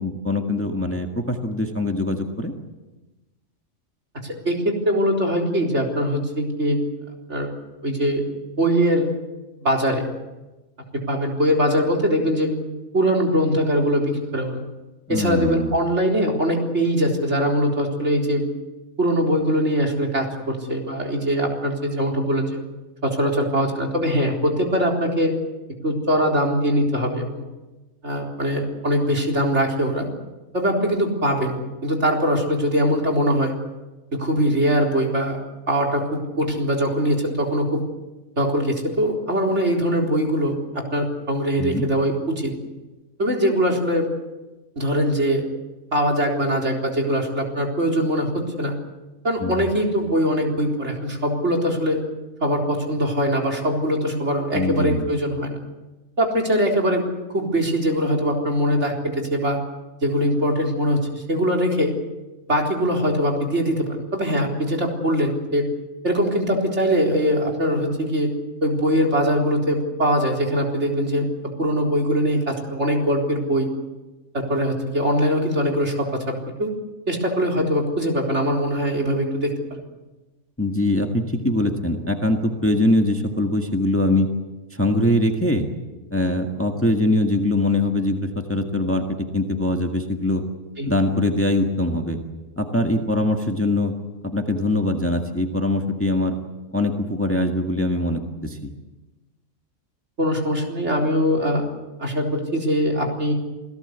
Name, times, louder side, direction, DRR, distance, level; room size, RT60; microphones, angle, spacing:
voice 1, 0.0-2.5 15.1-15.7 41.6-41.9 49.4-49.7 54.5-55.1 80.6-84.3 84.7-85.7 86.1-90.4 90.8-92.2 92.6-93.9 94.2-96.4 96.7-98.7, left 1 dB, 10° left, 3 dB, 1.7 m, -22 dB
voice 2, 4.2-6.8 7.3-7.5 7.8-8.2 8.6-9.1 9.6-10.1 10.9-12.5 12.9-14.6 15.1-18.4 19.0-22.6 23.0-25.4 25.8-27.5 28.0-30.1 30.5-33.5 34.1-35.4 35.7-37.8 38.4-42.5 43.2-44.1 44.8-45.4 45.9-48.7 49.2-52.0 52.4-55.6 56.2-57.1 57.3-59.6 60.0-61.9 62.5-65.7 66.0-68.3 68.6-71.3 71.6-73.7 74.3-76.7 77.1-79.8 90.8-90.9 100.2-101.6 102.0-103.3, equal, 55° right, 0 dB, 4.2 m, -22 dB
27.5 x 17.5 x 8.2 m, 1.1 s
omnidirectional pair, 1.5 m